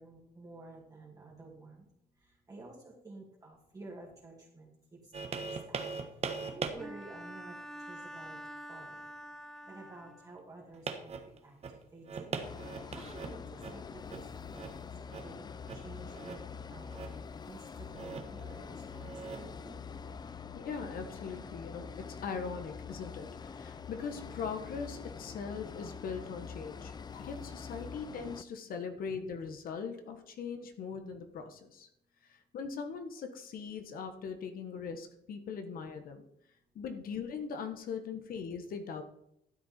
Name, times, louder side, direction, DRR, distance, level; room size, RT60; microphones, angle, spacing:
voice 1, 0.0-1.8 2.2-4.7 5.0-5.8 6.4-7.6 7.9-8.4 8.7-9.0 9.7-12.4 12.9-14.9 15.2-15.4 15.7-17.0 17.4-19.8, right 3 dB, 20° right, -3 dB, 2.4 m, -51 dB
sound 1, 5.1-6.7 7.3-7.4 10.7-13.8 14.1-14.2 14.5-14.7 15.1-15.3 15.7-15.8 16.1-16.5 16.8-17.3 17.9-18.4 18.8-19.6 20.3-20.4, right 5 dB, 40° right, 1.3 m, -40 dB
Bowed string instrument, 6.8-10.5, equal, 5° left, 0.9 m, -47 dB
sound 2, 12.4-28.4, left 6 dB, 25° left, 0.5 m, -45 dB
voice 2, 20.5-23.3 23.5-31.9 32.5-36.2 36.7-39.0, left 5 dB, 60° left, 7 dB, 1.4 m, -40 dB
12.5 x 7.7 x 4.4 m, 0.76 s
cardioid pair, 110°, 17 cm